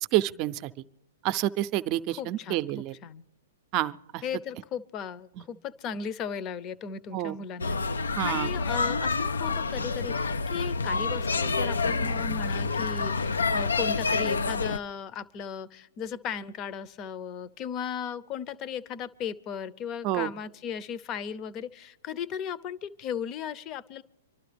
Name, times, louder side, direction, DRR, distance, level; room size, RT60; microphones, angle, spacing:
voice 1, 0.1-0.8 1.2-3.0 3.7-4.2 5.4-5.5 7.1-7.4 8.2-8.5 20.0-20.3, right 14 dB, 40° right, 13 dB, 0.6 m, -28 dB
voice 2, 2.2-2.7 3.0-3.2 4.2-7.8 8.2-24.0, left 7 dB, 35° left, 17 dB, 0.7 m, -36 dB
sound 1, 7.6-14.8, left 4 dB, 85° left, 0.5 m, -28 dB
26.0 x 12.0 x 3.4 m, 0.87 s
hypercardioid pair, 120°, 0 cm